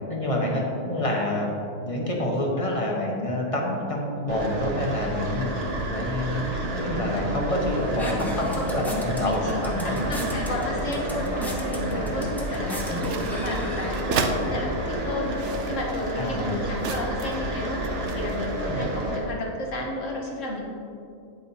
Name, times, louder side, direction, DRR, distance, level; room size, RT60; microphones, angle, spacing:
voice 1, 0.1-1.5 1.8-5.5 5.9-6.5 6.8-10.1 11.9-12.2 14.3-14.5 16.2-16.6 18.7-18.9, left 1 dB, 30° left, -1 dB, 1.0 m, -27 dB
sound 1, 4.3-19.2, right 1 dB, 50° right, 1.3 m, -30 dB
sound 2, 7.6-14.5, equal, ahead, 0.6 m, -38 dB
voice 2, 8.0-8.6 9.2-9.6 9.8-17.8 18.1-20.6, left 1 dB, 70° left, -1 dB, 1.6 m, -32 dB
sound 3, 12.6-14.4 15.1-17.5 17.8-18.5, right 6 dB, 65° right, 0.9 m, -33 dB
8.6 x 8.4 x 2.8 m, 2.5 s
omnidirectional pair, 1.4 m